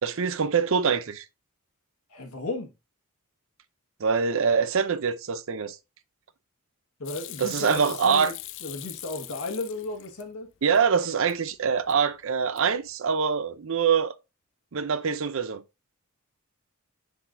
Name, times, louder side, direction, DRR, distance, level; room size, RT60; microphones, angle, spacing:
voice 1, 0.0-1.2 4.0-5.8 7.4-8.3 10.6-14.1 14.7-15.6, right 6 dB, 60° right, 0.5 m, -24 dB
voice 2, 2.1-2.7 7.0-8.3 8.6-10.5, left 2 dB, 90° left, 1.6 m, -34 dB
Hands / Sink (filling or washing), 7.0-10.2 10.6-11.4 11.7-12.2 12.4-12.9, left 15 dB, 55° left, 0.5 m, -41 dB
9.9 x 4.2 x 2.6 m
head